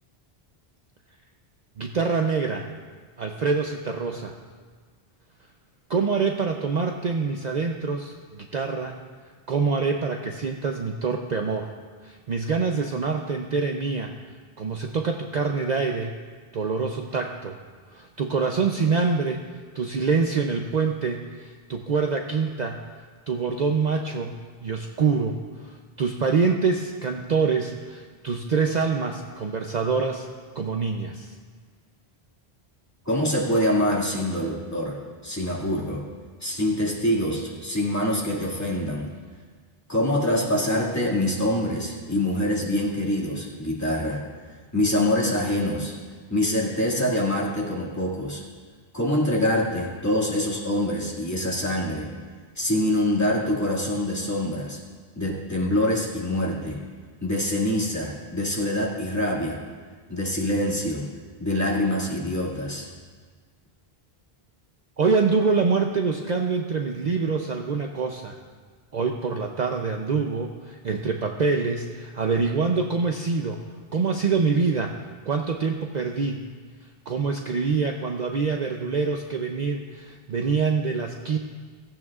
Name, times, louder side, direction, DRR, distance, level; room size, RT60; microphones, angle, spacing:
voice 1, 1.8-2.6 3.2-4.3 5.9-9.0 9.5-11.7 12.0-14.1 14.6-16.2 16.5-17.6 17.9-19.4 19.7-22.8 23.3-25.4 25.6-30.3 30.6-31.3 65.0-68.4 68.9-73.6 73.9-74.9 75.3-76.4 77.1-81.4, right 4 dB, 50° right, 2 dB, 0.7 m, -25 dB
voice 2, 33.1-35.0 35.2-36.0 36.4-39.1 39.9-44.2 44.7-45.9 46.3-48.4 48.9-52.1 52.6-54.8 55.2-56.8 57.2-59.6 60.1-61.1 61.4-62.9, left 1 dB, 15° left, -4 dB, 2.1 m, -25 dB
15.5 x 15.5 x 2.4 m, 1.5 s
omnidirectional pair, 1.1 m